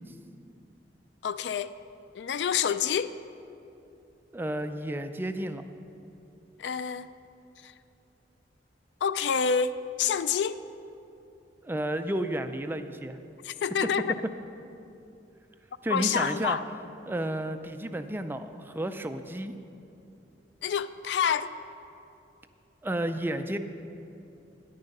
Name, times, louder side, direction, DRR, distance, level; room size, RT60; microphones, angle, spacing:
voice 1, 1.2-1.7 2.2-3.1 6.6-7.1 9.0-9.7 10.0-10.5 13.4-14.1 15.9-16.6 20.6-21.5, left 7 dB, 70° left, 0.3 m, -27 dB
voice 2, 4.3-5.6 11.6-13.2 15.8-16.6 17.1-19.6 22.8-23.6, right 1 dB, 10° right, 0.4 m, -32 dB
9.9 x 9.4 x 5.3 m
head